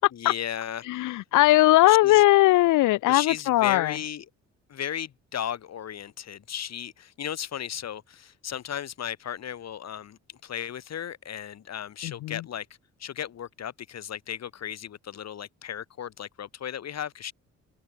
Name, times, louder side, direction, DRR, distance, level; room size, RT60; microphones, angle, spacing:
voice 1, 0.1-0.9 1.9-2.2 3.1-4.3 4.7-12.7 13.0-17.3, left 9 dB, 60° left, 3.1 m, -35 dB
voice 2, 0.9-3.9, left 17 dB, 85° left, 0.8 m, -19 dB
cardioid pair, 90°, 30 cm